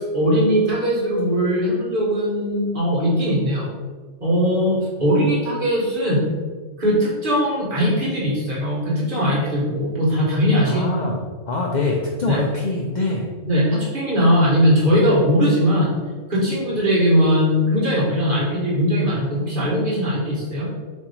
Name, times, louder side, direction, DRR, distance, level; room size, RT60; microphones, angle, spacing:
voice 1, 0.0-3.7 4.2-6.3 6.8-10.8 12.3-12.4 13.4-16.0 16.3-20.7, equal, 45° right, -7 dB, 1.5 m, -20 dB
voice 2, 10.6-11.2 11.5-13.3, left 3 dB, 65° left, 0 dB, 0.4 m, -24 dB
4.3 x 2.8 x 4.1 m, 1.5 s
omnidirectional pair, 1.3 m